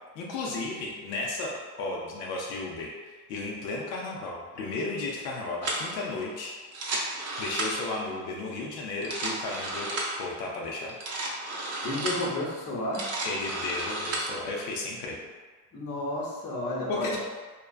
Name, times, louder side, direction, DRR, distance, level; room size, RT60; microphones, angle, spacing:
voice 1, 0.2-1.5 1.8-7.0 7.4-9.9 10.2-10.9 13.2-15.2 16.9-17.2, left 3 dB, 85° left, -2 dB, 0.6 m, -34 dB
sound 1, 5.6-5.9 6.6-8.0 8.9-10.2 10.9-12.3 12.8-14.4, right 2 dB, 35° right, 0.6 m, -33 dB
voice 2, 11.8-13.0 15.7-17.2, left 1 dB, 30° left, -4 dB, 0.8 m, -31 dB
2.4 x 2.1 x 2.4 m, 1.4 s
hypercardioid pair, 70°, 47 cm